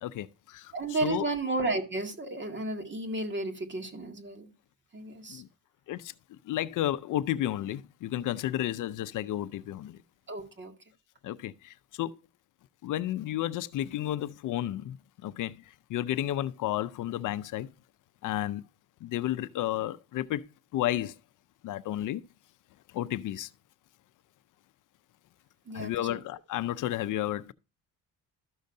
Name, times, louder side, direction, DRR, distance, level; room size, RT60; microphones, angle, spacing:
voice 1, 0.0-0.7 1.0-1.3 5.3-5.5 5.9-6.1 6.4-10.0 11.2-12.2 12.8-15.0 15.2-15.6 15.9-17.7 18.2-18.6 19.0-20.5 20.7-21.2 21.6-22.2 22.9-23.5 25.7-27.5, left 13 dB, 70° left, 0.5 m, -32 dB
voice 2, 0.7-4.5 4.9-5.4 10.3-10.7 25.7-26.2, right 2 dB, 35° right, 2.0 m, -33 dB
12.5 x 6.4 x 2.6 m
cardioid pair, 100°, 33 cm